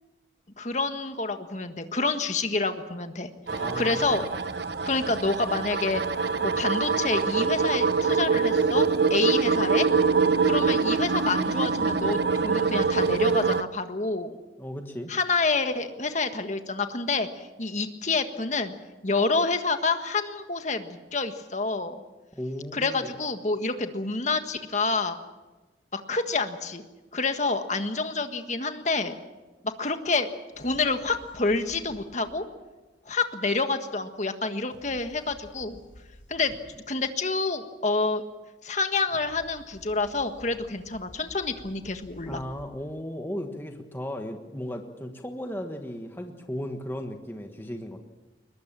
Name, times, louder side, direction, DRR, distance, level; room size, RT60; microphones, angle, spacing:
voice 1, 0.6-4.2 4.8-6.0 6.4-9.9 10.4-14.4 15.1-18.7 19.0-22.0 22.7-25.2 25.9-26.8 27.1-29.1 29.6-30.3 30.6-32.4 33.1-35.8 36.3-36.6 36.9-38.2 38.6-42.4, left 3 dB, 40° left, 7 dB, 1.6 m, -28 dB
voice 2, 3.5-4.2 14.6-15.1 22.3-23.1 42.3-48.0, equal, 10° left, 4 dB, 1.4 m, -36 dB
sound 1, 3.5-13.6, right 5 dB, 60° right, 0.8 m, -24 dB
sound 2, 30.5-32.6 34.7-36.9 39.1-42.7, equal, 85° left, 6.2 m, -51 dB
22.0 x 21.0 x 7.5 m, 1.2 s
head